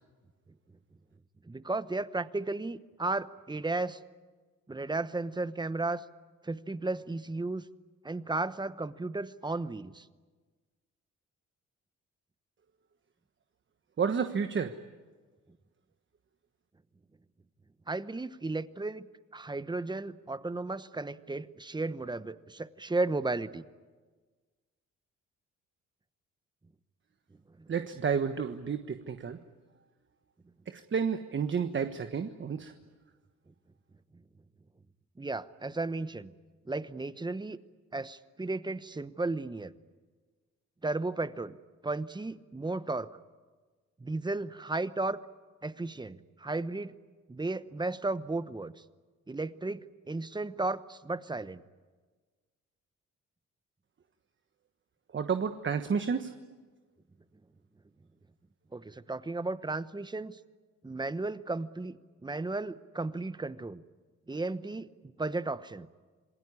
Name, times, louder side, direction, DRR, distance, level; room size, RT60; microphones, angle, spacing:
voice 1, 1.4-4.0 4.7-6.0 6.4-7.7 8.0-10.1 17.9-19.1 19.3-23.6 27.6-27.7 35.2-36.3 36.6-37.6 37.9-39.7 40.8-41.5 41.8-43.2 44.0-45.2 45.6-46.9 47.3-48.8 49.3-51.6 58.7-60.4 60.8-62.0 62.2-63.8 64.3-65.9, right 2 dB, 15° right, 14 dB, 1.0 m, -34 dB
voice 2, 14.0-14.8 27.7-29.4 30.7-32.7 55.1-56.3, right 6 dB, 40° right, 8 dB, 1.3 m, -31 dB
27.5 x 20.0 x 9.8 m, 1.4 s
cardioid pair, 90°, 30 cm